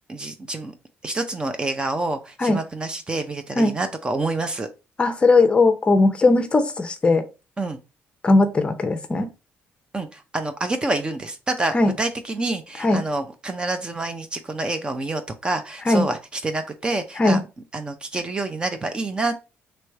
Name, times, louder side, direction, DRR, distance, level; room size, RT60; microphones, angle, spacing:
voice 1, 0.1-0.7 1.0-4.7 7.6-7.8 9.9-17.5 17.7-19.4, right 2 dB, 20° right, 8 dB, 0.5 m, -27 dB
voice 2, 5.0-7.2 8.2-9.3 11.7-11.9 12.8-13.0 15.9-16.1 17.2-17.4, left 3 dB, 25° left, 8 dB, 0.6 m, -18 dB
3.1 x 3.0 x 4.6 m, 0.29 s
cardioid pair, 130°, 4 cm